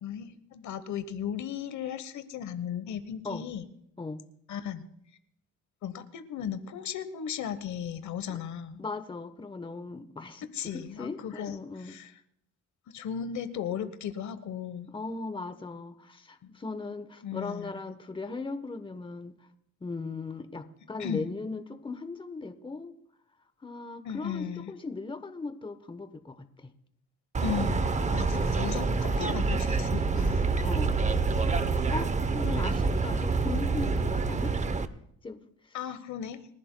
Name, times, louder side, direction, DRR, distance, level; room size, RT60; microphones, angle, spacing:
voice 1, 0.0-3.7 4.5-4.9 5.8-8.8 10.5-11.6 11.8-12.1 12.9-14.9 16.4-16.6 17.2-17.8 21.0-21.3 24.0-24.7 27.4-30.5 32.4-32.7 35.7-36.4, left 8 dB, 70° left, 11 dB, 1.1 m, -36 dB
voice 2, 8.8-12.0 14.9-19.5 19.8-22.9 23.6-26.7 28.1-28.6 30.6-31.0 31.9-34.6 35.2-35.8, left 3 dB, 15° left, 10 dB, 1.0 m, -38 dB
sound 1, 27.3-34.9, right 4 dB, 25° right, 0.7 m, -27 dB
29.5 x 11.0 x 2.2 m, 0.74 s
cardioid pair, 90°, 30 cm